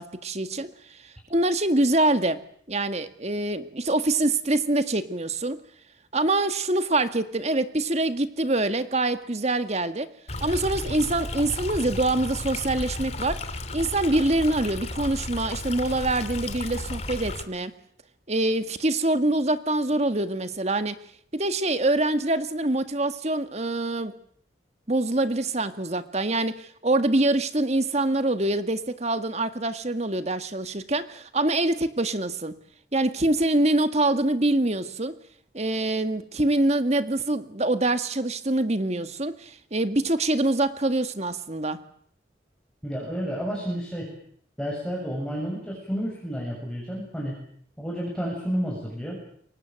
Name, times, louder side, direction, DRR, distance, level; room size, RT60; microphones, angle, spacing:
voice 1, 0.0-2.4 2.7-5.6 6.1-10.1 10.4-13.4 13.7-17.7 18.3-21.0 21.3-24.1 24.9-32.5 32.9-35.2 35.5-41.8, right 2 dB, 40° right, 10 dB, 1.8 m, -25 dB
Stream, 10.3-17.4, left 2 dB, 35° left, 2.4 m, -34 dB
voice 2, 42.8-44.1 44.6-47.4 47.8-49.2, equal, 5° left, -4 dB, 7.1 m, -31 dB
28.5 x 23.5 x 7.8 m, 0.62 s
head